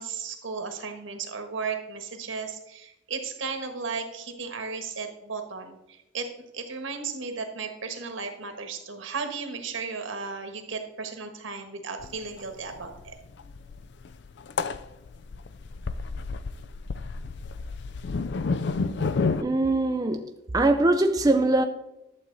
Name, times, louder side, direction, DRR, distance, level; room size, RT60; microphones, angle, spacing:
voice 1, 0.0-6.3 6.5-13.2, right 5 dB, 75° right, 6 dB, 1.5 m, -35 dB
sound 1, 12.0-12.1 12.4-12.5 12.7-19.4, left 4 dB, 55° left, 0.4 m, -30 dB
voice 2, 19.4-20.3 20.5-21.6, right 2 dB, 20° right, 5 dB, 0.4 m, -22 dB
11.5 x 7.6 x 4.0 m, 0.92 s
head